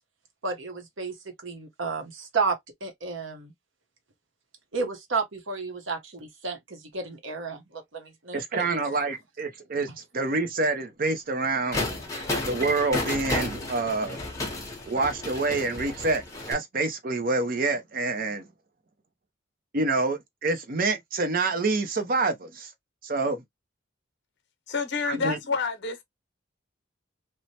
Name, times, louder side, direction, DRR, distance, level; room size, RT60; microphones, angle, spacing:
voice 1, 0.4-3.5 4.7-8.7 12.1-12.3, right 4 dB, 70° right, 0.9 m, -32 dB
voice 2, 8.3-11.9 12.4-14.2 14.9-18.4 19.7-22.7 23.0-23.4 25.1-25.4, right 3 dB, 45° right, 0.6 m, -27 dB
sound 1, 11.7-16.5, left 2 dB, 15° left, 0.8 m, -32 dB
voice 3, 24.7-26.0, left 5 dB, 55° left, 0.8 m, -28 dB
3.1 x 2.1 x 2.7 m
head